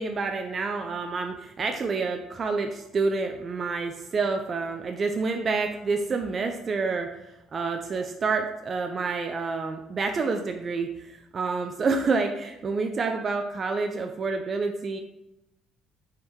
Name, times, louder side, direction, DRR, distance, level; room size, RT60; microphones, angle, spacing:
voice 1, 0.0-15.0, right 4 dB, 35° right, 4 dB, 0.3 m, -28 dB
3.6 x 2.6 x 4.4 m, 0.90 s
cardioid pair, 120°, 0 cm